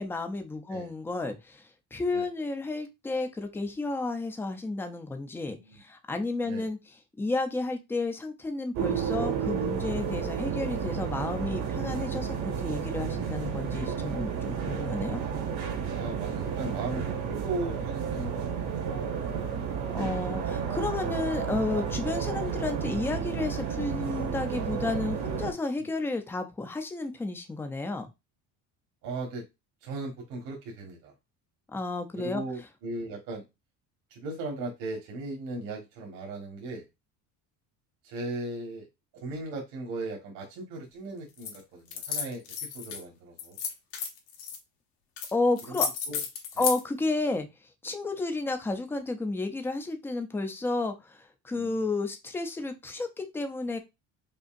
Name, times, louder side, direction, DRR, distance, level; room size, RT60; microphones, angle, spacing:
voice 1, 0.0-12.4 12.6-15.2 19.9-28.1 31.7-32.4 45.3-45.9 46.6-47.5 47.8-53.8, left 3 dB, 5° left, 7 dB, 0.4 m, -32 dB
voice 2, 5.5-5.8 6.4-6.7 15.9-18.7 25.8-25.9 29.0-29.4 29.8-31.1 32.1-33.4 34.1-36.8 38.0-38.9 39.1-43.6 45.7-45.8 46.1-46.2 46.5-46.7 51.5-51.9, right 2 dB, 60° right, -1 dB, 1.4 m, -38 dB
sound 1, 8.7-25.5, right 7 dB, 80° right, 1.6 m, -32 dB
sound 2, 41.4-41.6 41.9-43.0 43.4-44.6 45.2-45.3 45.6-46.8, left 6 dB, 70° left, 1.2 m, -32 dB
5.3 x 2.7 x 2.4 m, 0.23 s
cardioid pair, 145°, 37 cm